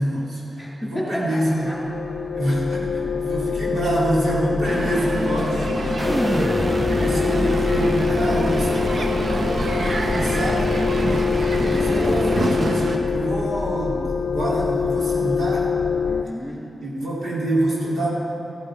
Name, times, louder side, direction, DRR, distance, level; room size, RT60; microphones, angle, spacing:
voice 1, 0.0-1.7 2.3-5.7 6.9-11.0 11.7-15.7 16.8-18.1, right 1 dB, 75° right, -6 dB, 3.8 m, -26 dB
voice 2, 0.6-1.4 1.7-1.8 2.9-3.1 6.0-6.6 11.6-12.6 16.0-16.7, left 1 dB, 5° left, -5 dB, 3.3 m, -30 dB
sound 1, 1.4-16.2, left 6 dB, 70° left, 0.5 m, -25 dB
Crowd, 4.6-13.0, right 2 dB, 55° right, 1.1 m, -26 dB
sound 2, 6.0-12.7, equal, 10° right, 0.4 m, -28 dB
14.0 x 14.0 x 5.2 m, 3.0 s
wide cardioid pair, 120°, 0 cm